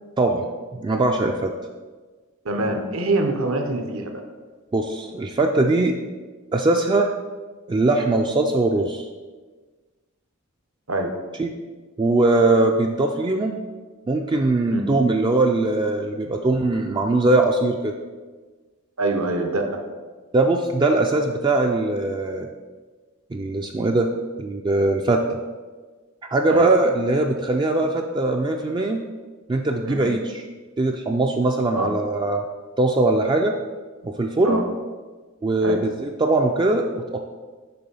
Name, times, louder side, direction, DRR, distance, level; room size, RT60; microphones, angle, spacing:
voice 1, 0.7-1.5 4.7-6.0 6.5-7.1 7.7-9.1 11.4-11.5 12.0-13.6 14.1-17.9 20.3-22.5 23.3-24.1 24.4-25.2 26.3-29.0 29.5-30.3 30.8-32.4 32.8-33.6 34.0-34.6 35.4-37.2, right 2 dB, 20° right, 3 dB, 0.3 m, -21 dB
voice 2, 2.4-4.1 10.9-11.1 14.7-14.9 19.0-19.8 26.5-26.7 29.9-30.1 31.8-31.9 34.4-34.6 35.6-35.8, right 2 dB, 70° right, 4 dB, 0.8 m, -24 dB
6.8 x 3.2 x 5.4 m, 1.4 s
head